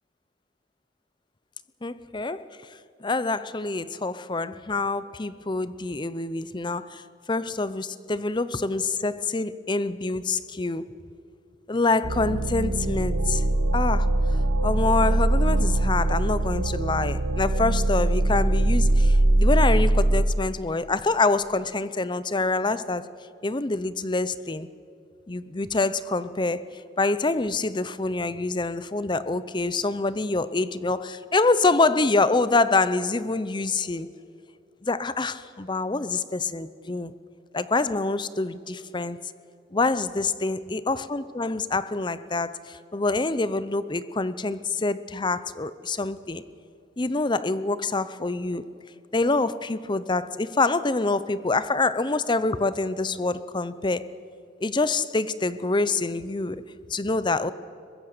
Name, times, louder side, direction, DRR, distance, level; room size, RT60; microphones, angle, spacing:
voice 1, 1.8-2.5 3.0-7.0 7.3-10.9 11.7-13.4 13.7-23.1 23.4-24.7 25.3-26.6 27.0-34.1 34.8-37.1 37.5-39.2 39.7-46.4 47.0-48.7 49.1-54.1 54.6-56.6 56.9-57.5, left 3 dB, 25° left, 15 dB, 0.6 m, -26 dB
sound 1, 12.0-20.2, right 1 dB, 90° right, 1.1 m, -22 dB
23.0 x 20.5 x 6.7 m, 2.6 s
head